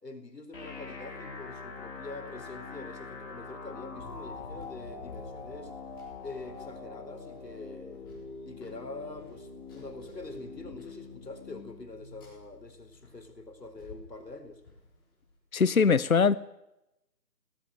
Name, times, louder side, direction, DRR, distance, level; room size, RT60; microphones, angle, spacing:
voice 1, 0.0-5.7 6.2-8.1 8.5-14.6, left 2 dB, 70° left, 6 dB, 4.7 m, -45 dB
sound 1, 0.5-14.5, left 4 dB, 35° left, 7.2 m, -45 dB
Run, 4.0-15.4, left 3 dB, 15° left, 4.6 m, -53 dB
voice 2, 15.5-16.4, left 5 dB, 55° left, 17 dB, 0.8 m, -22 dB
26.0 x 18.5 x 6.7 m, 0.88 s
figure-of-eight pair, 170°, 50 cm